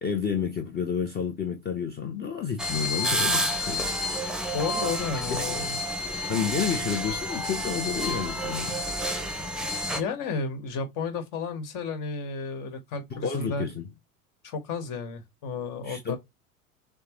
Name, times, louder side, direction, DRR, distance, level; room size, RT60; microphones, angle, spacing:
voice 1, 0.0-4.0 5.1-5.6 6.3-8.8 13.1-13.9 15.8-16.2, left 7 dB, 25° left, 0.9 m, -30 dB
sound 1, 2.6-10.0, equal, ahead, 0.8 m, -29 dB
voice 2, 4.5-5.8 10.0-13.7 14.4-16.2, left 4 dB, 50° left, 1.6 m, -32 dB
6.6 x 2.3 x 3.1 m
hypercardioid pair, 90°, 41 cm